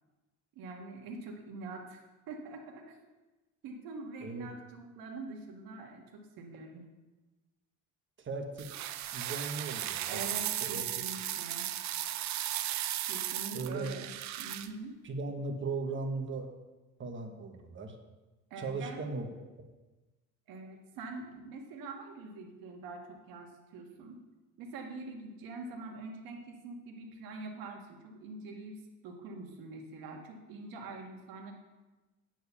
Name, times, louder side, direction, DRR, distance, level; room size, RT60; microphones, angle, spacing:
voice 1, 0.6-3.0 3.6-6.9 10.1-11.7 13.1-14.1 14.4-15.0 18.5-19.0 20.5-24.2 24.6-31.5, right 3 dB, 75° right, 1 dB, 1.8 m, -44 dB
voice 2, 8.2-8.7 9.1-10.9 13.5-13.9 15.0-16.5 17.0-18.0 18.6-19.3, right 3 dB, 35° right, 5 dB, 1.2 m, -38 dB
sound 1, 8.6-14.7, right 12 dB, 55° right, 0.6 m, -36 dB
9.1 x 4.8 x 6.8 m, 1.1 s
cardioid pair, 110°, 35 cm